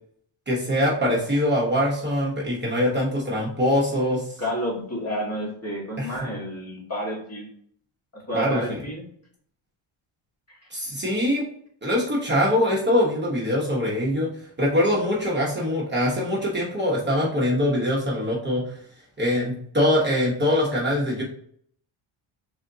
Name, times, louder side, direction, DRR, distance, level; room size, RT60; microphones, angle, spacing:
voice 1, 0.5-4.3 6.0-6.2 8.3-8.8 10.7-11.5 11.8-14.3 14.6-18.6 19.2-21.2, left 1 dB, 20° right, -5 dB, 1.0 m, -23 dB
voice 2, 4.4-7.5 8.1-9.1, equal, 30° left, -3 dB, 1.5 m, -30 dB
3.8 x 3.3 x 2.7 m, 0.64 s
cardioid pair, 110°, 49 cm